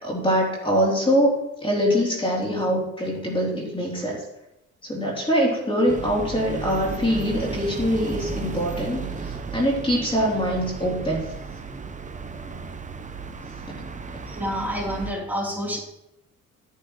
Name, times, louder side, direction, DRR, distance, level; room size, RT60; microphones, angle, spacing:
voice 1, 0.0-4.2 4.8-11.3, equal, 15° left, -3 dB, 3.5 m, -23 dB
sound 1, 5.9-15.1, right 5 dB, 25° right, 1.0 m, -34 dB
voice 2, 14.3-15.8, equal, 5° right, -4 dB, 3.7 m, -28 dB
14.0 x 10.0 x 3.2 m, 0.87 s
cardioid pair, 90°, 30 cm